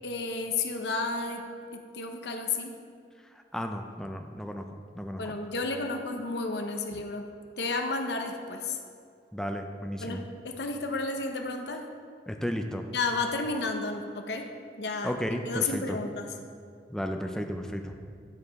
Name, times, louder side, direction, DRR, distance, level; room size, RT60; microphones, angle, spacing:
voice 1, 0.0-1.4 1.9-2.7 5.2-7.3 7.6-8.8 10.0-11.8 12.9-14.5 14.8-16.2, left 3 dB, 70° left, 4 dB, 0.8 m, -32 dB
voice 2, 3.5-4.7 4.9-5.2 9.3-10.2 12.3-12.8 15.0-16.0 16.9-17.9, equal, 5° left, 4 dB, 0.4 m, -33 dB
9.4 x 4.9 x 4.6 m, 2.2 s
head